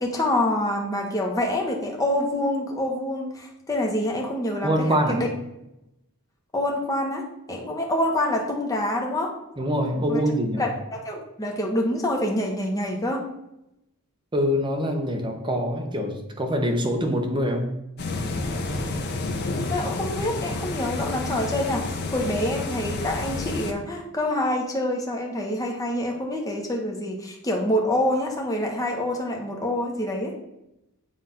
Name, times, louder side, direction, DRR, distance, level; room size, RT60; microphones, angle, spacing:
voice 1, 0.0-5.3 6.5-7.2 7.5-9.3 10.1-10.2 10.6-13.2 19.7-30.3, left 1 dB, 15° left, 0 dB, 0.9 m, -26 dB
voice 2, 4.6-5.2 9.6-10.7 14.3-17.8, equal, 20° right, 3 dB, 0.8 m, -24 dB
sound 1, 18.0-23.7, left 2 dB, 45° left, 0.7 m, -30 dB
7.5 x 2.5 x 5.7 m, 0.86 s
head